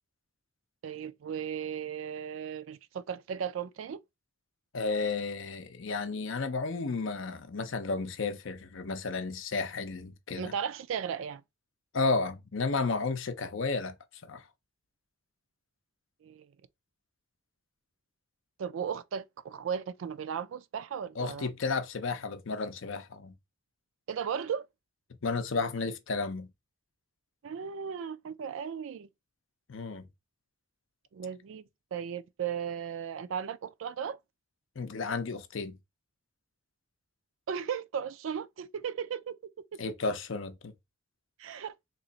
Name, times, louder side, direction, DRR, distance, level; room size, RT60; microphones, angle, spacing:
voice 1, 0.8-4.0 10.4-11.4 16.2-16.5 18.6-21.5 24.1-24.7 27.4-29.1 31.1-31.6 31.9-34.2 37.5-39.4 41.4-41.7, right 7 dB, 65° right, 0.3 m, -36 dB
voice 2, 4.7-10.5 11.9-14.0 14.2-14.5 21.2-23.3 25.2-26.5 29.7-30.1 34.8-35.8 39.8-40.7, left 4 dB, 60° left, 0.6 m, -32 dB
3.0 x 2.4 x 3.9 m
head